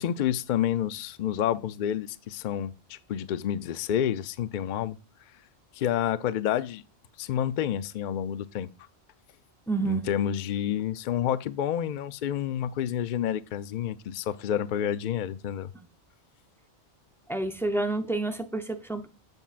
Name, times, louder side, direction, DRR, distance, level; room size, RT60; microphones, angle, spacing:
voice 1, 0.0-5.0 5.8-6.8 7.2-8.7 9.8-15.7, left 10 dB, 60° left, 0.5 m, -29 dB
voice 2, 9.7-10.0 17.3-19.1, right 2 dB, 5° left, 0.3 m, -29 dB
8.1 x 7.0 x 2.4 m
omnidirectional pair, 1.2 m